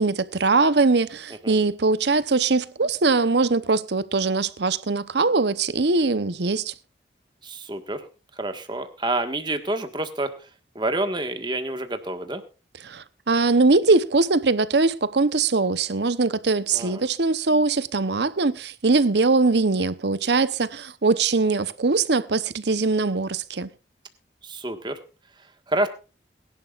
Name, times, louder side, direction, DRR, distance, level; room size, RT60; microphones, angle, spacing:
voice 1, 0.0-6.7 12.8-23.7, right 3 dB, 70° right, 0.8 m, -21 dB
voice 2, 7.4-8.0 8.4-10.4 10.7-12.4 16.7-17.0 24.4-25.0 25.7-25.9, right 2 dB, 25° right, 1.6 m, -28 dB
22.5 x 11.5 x 2.5 m
head